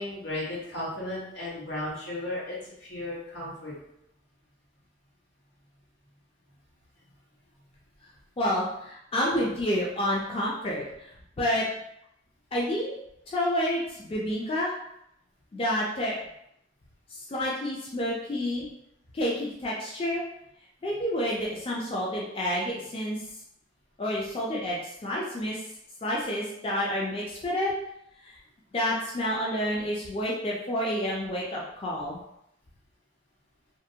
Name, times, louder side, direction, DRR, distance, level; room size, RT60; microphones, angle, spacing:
voice 1, 0.0-3.7, left 1 dB, 85° left, -8 dB, 1.2 m, -35 dB
voice 2, 8.4-11.7 12.5-12.9 13.3-14.7 15.5-16.2 17.1-18.7 19.1-20.2 20.8-23.2 24.0-25.6 26.0-27.7 28.2-28.4 28.7-32.2, equal, 30° left, -4 dB, 0.4 m, -29 dB
2.5 x 2.1 x 2.7 m, 0.78 s
head